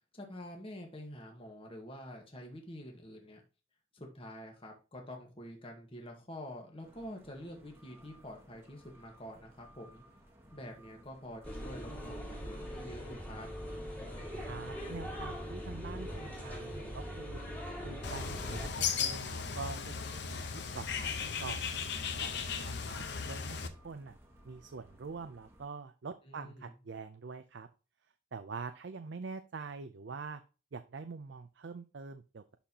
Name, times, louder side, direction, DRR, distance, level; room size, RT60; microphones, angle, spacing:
voice 1, 0.1-3.4 3.9-10.0 10.5-13.5 26.2-26.7, equal, 30° left, 2 dB, 1.4 m, -47 dB
sound 1, 6.8-25.6, equal, 10° right, 1.3 m, -59 dB
sound 2, 11.4-18.7, equal, 10° left, 2.0 m, -41 dB
voice 2, 14.4-17.4 17.8-20.0 20.3-21.6 22.0-23.6 23.8-24.2 24.4-27.7 28.3-30.4 30.7-32.4, right 4 dB, 60° right, 9 dB, 0.5 m, -45 dB
Bird, 18.0-23.7, left 6 dB, 60° left, 0.8 m, -36 dB
11.5 x 4.2 x 2.9 m, 0.32 s
head